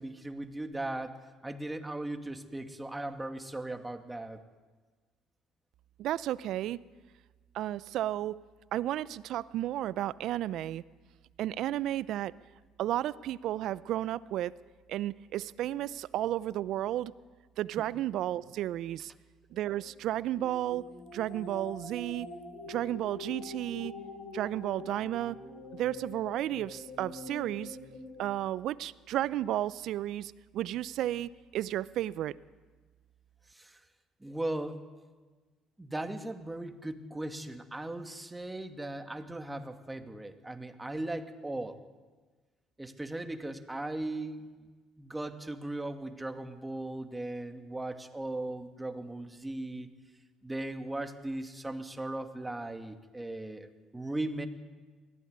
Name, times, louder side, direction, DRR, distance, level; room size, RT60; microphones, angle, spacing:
voice 1, 0.0-4.4 17.8-17.9 33.5-33.8 34.2-34.8 35.8-41.8 42.8-44.7 45.0-49.9 50.4-54.5, right 2 dB, 15° right, 7 dB, 2.5 m, -38 dB
voice 2, 6.0-6.8 7.5-8.3 8.7-10.8 11.4-12.3 12.8-14.6 14.9-17.1 17.6-19.1 19.5-20.9 21.1-22.3 22.7-23.9 24.3-25.4 25.7-27.8 28.2-32.4, right 13 dB, 70° right, 19 dB, 0.6 m, -33 dB
sound 1, 19.5-28.2, left 2 dB, 70° left, 7.9 m, -45 dB
21.5 x 16.0 x 9.7 m, 1.4 s
hypercardioid pair, 60°, 0 cm